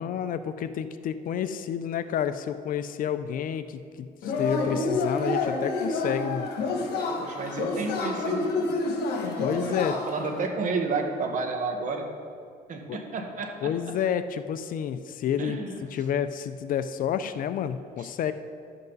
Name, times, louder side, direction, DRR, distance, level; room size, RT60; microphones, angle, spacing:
voice 1, 0.0-6.5 9.4-10.0 12.9-13.0 13.6-15.6 15.9-18.3, left 9 dB, 55° left, 12 dB, 0.5 m, -30 dB
Yell / Cheering, 4.2-10.3, left 3 dB, 75° left, 1.7 m, -28 dB
voice 2, 7.2-8.6 9.5-12.1 12.7-13.7 15.4-15.8, right 4 dB, 50° right, 3 dB, 1.5 m, -31 dB
12.0 x 8.0 x 4.0 m, 2.3 s
cardioid pair, 110°, 17 cm